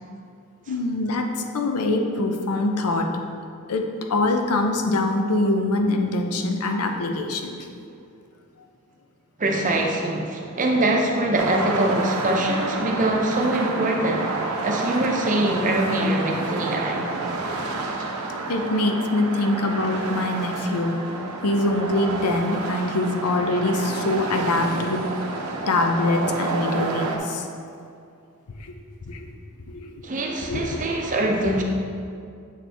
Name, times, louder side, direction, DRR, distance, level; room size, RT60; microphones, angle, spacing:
voice 1, 0.7-3.2 3.7-7.6 18.5-21.0 21.4-25.2 25.7-27.5 28.6-28.7 29.1-29.3 29.7-30.0 30.4-30.8, left 2 dB, 80° left, 4 dB, 0.6 m, -24 dB
voice 2, 9.4-14.3 14.6-17.1 30.0-31.6, right 1 dB, 35° right, 0 dB, 0.7 m, -23 dB
sound 1, 11.4-27.2, right 3 dB, 70° right, 0.7 m, -29 dB
7.4 x 4.3 x 3.4 m, 2.4 s
head